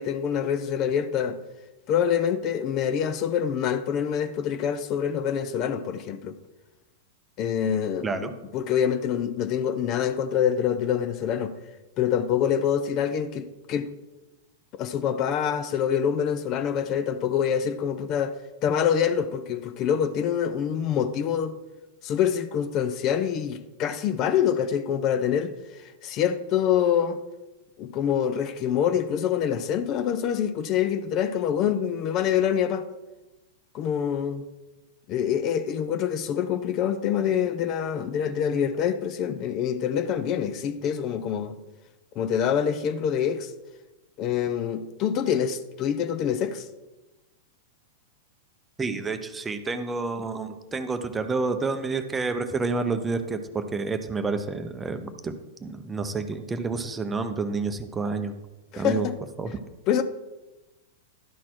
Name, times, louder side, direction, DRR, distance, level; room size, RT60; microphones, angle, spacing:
voice 1, 0.0-1.4 1.9-6.3 7.4-11.5 12.0-13.9 14.8-21.5 22.0-25.5 26.0-27.2 27.8-32.8 33.7-34.4 35.1-41.5 42.2-43.5 44.2-46.7 58.7-59.2 59.9-60.0, left 8 dB, 40° left, 0.5 m, -26 dB
voice 2, 48.8-55.3 55.6-58.3 58.7-59.1 59.4-59.6, right 4 dB, 15° right, 0.7 m, -29 dB
11.5 x 4.1 x 4.4 m
hypercardioid pair, 100°, 0 cm